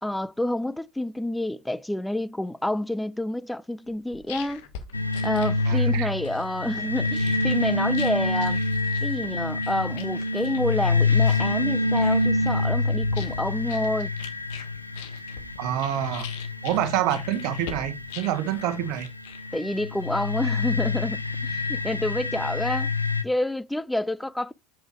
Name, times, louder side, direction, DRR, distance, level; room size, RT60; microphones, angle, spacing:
voice 1, 0.0-4.7 5.2-8.6 9.0-14.1 19.5-22.9 23.2-24.5, left 1 dB, 5° left, 0.5 m, -28 dB
sound 1, 3.9-20.0, left 8 dB, 60° left, 1.3 m, -44 dB
sound 2, 4.9-23.2, left 2 dB, 85° left, 0.6 m, -27 dB
voice 2, 5.7-6.1 15.6-16.3 16.6-19.1, right 11 dB, 50° right, 1.2 m, -27 dB
8.1 x 4.8 x 4.5 m
figure-of-eight pair, 70°, 0 cm